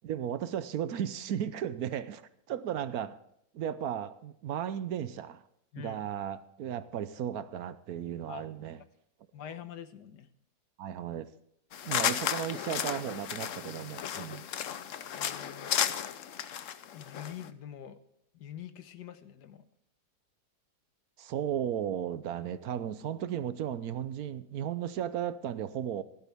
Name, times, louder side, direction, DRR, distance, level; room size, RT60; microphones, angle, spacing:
voice 1, 0.0-3.2 3.5-5.4 5.8-8.8 10.8-11.3 11.8-14.4 21.2-26.0, right 9 dB, 70° right, 1.1 m, -35 dB
voice 2, 9.3-10.3 15.1-15.7 16.9-18.0 18.3-19.6, left 9 dB, 80° left, 1.5 m, -45 dB
sound 1, 11.7-17.5, left 9 dB, 60° left, 0.9 m, -34 dB
16.0 x 11.5 x 3.5 m
omnidirectional pair, 1.8 m